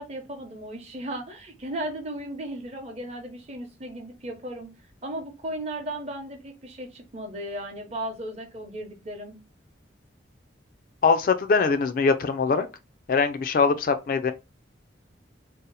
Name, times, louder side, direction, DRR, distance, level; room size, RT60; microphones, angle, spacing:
voice 1, 0.0-4.7 5.0-9.4, right 1 dB, 35° right, 0.7 m, -36 dB
voice 2, 11.0-12.7 13.1-14.3, left 4 dB, 45° left, 0.3 m, -22 dB
2.7 x 2.0 x 3.9 m
head